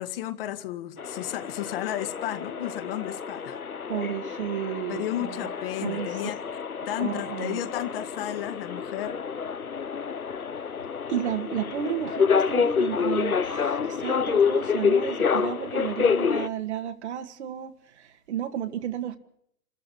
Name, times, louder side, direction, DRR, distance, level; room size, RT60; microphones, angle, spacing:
voice 1, 0.0-3.6 4.9-6.4 6.9-9.2, left 13 dB, 40° left, 2.1 m, -33 dB
sound 1, 1.0-16.5, left 6 dB, 85° left, 1.0 m, -28 dB
voice 2, 3.9-5.5 5.8-6.2 7.0-7.6 11.1-19.2, right 10 dB, 50° right, 2.0 m, -32 dB
27.5 x 14.0 x 9.9 m
figure-of-eight pair, 120°, 42 cm